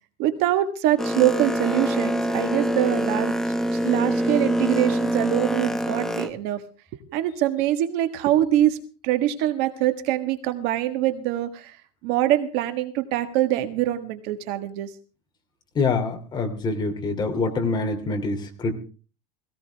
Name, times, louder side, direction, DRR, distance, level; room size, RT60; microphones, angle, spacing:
voice 1, 0.2-3.4 3.7-6.6 7.1-8.8 9.0-11.8 12.0-14.9, right 13 dB, 55° right, 9 dB, 1.6 m, -24 dB
Boat Water vehicle, 1.0-6.3, equal, ahead, 0.8 m, -25 dB
voice 2, 15.7-18.7, left 3 dB, 20° left, 3 dB, 2.9 m, -25 dB
18.0 x 17.5 x 3.5 m, 0.37 s
supercardioid pair, 160°, 21 cm